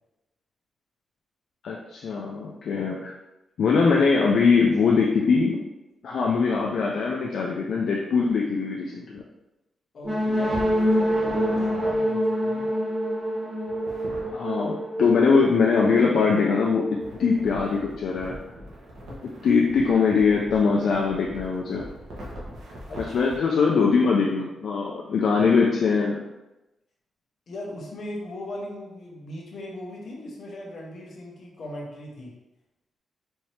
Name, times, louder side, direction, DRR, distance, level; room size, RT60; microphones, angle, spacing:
voice 1, 1.6-3.1 3.6-5.6 6.0-9.2 14.3-18.4 19.1-21.8 23.0-26.2, left 5 dB, 60° left, -2 dB, 0.4 m, -22 dB
voice 2, 9.9-12.8 22.9-23.3 27.5-32.3, left 1 dB, 45° left, -2 dB, 0.9 m, -38 dB
sound 1, 10.0-17.7, equal, 5° right, 0.7 m, -27 dB
sound 2, 10.5-11.9 13.7-14.3 17.0-23.4, equal, 90° right, 1.1 m, -40 dB
4.3 x 2.7 x 3.2 m, 0.98 s
wide cardioid pair, 180°, 0 cm